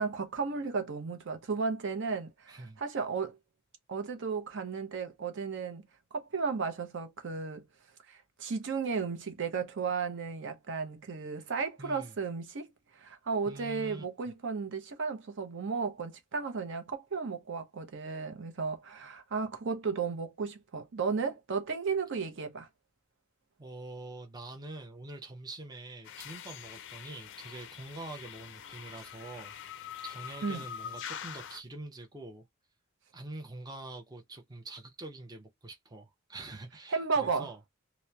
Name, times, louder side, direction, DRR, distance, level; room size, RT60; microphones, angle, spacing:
voice 1, 0.0-3.4 3.9-5.8 6.1-7.7 8.1-22.7 30.4-30.6 36.9-37.5, right 5 dB, 60° right, 0.6 m, -34 dB
voice 2, 2.5-2.8 11.8-12.2 13.5-14.0 23.6-32.4 33.1-37.6, right 2 dB, 20° right, 0.5 m, -45 dB
sound 1, 26.0-31.6, left 9 dB, 60° left, 0.4 m, -44 dB
2.8 x 2.1 x 2.2 m
head